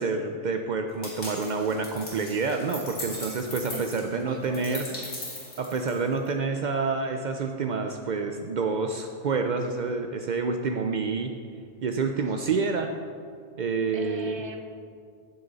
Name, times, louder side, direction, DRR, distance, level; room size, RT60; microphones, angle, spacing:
voice 1, 0.0-4.8 5.6-11.3 11.8-12.9 13.6-14.4, right 4 dB, 65° right, 5 dB, 0.4 m, -28 dB
sound 1, 1.0-6.3, left 1 dB, 60° left, 2.7 m, -39 dB
voice 2, 3.7-5.1 12.2-12.7 13.9-14.6, right 2 dB, 25° right, 4 dB, 0.7 m, -41 dB
16.0 x 6.8 x 4.0 m, 2.2 s
omnidirectional pair, 1.5 m